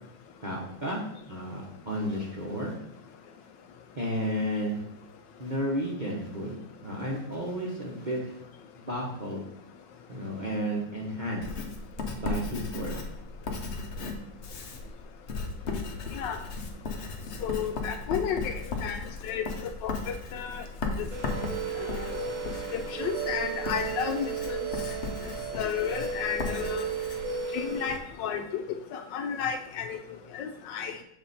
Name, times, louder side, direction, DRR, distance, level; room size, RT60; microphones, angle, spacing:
voice 1, 0.4-1.0 1.3-2.7 4.0-4.8 5.4-8.4 8.8-9.4 10.1-11.5 12.1-12.9, equal, 35° right, -3 dB, 0.8 m, -32 dB
Writing, 11.4-28.0, left 3 dB, 55° left, 0.8 m, -36 dB
voice 2, 17.4-18.5 18.8-19.5 19.8-20.6 21.8-22.1 22.7-24.6 25.6-26.9 27.5-28.6 28.9-30.0 30.3-31.0, left 8 dB, 75° left, 7 dB, 1.2 m, -32 dB
sound 1, 21.1-28.0, right 6 dB, 50° right, 1.2 m, -34 dB
7.2 x 3.6 x 4.1 m, 0.74 s
omnidirectional pair, 2.1 m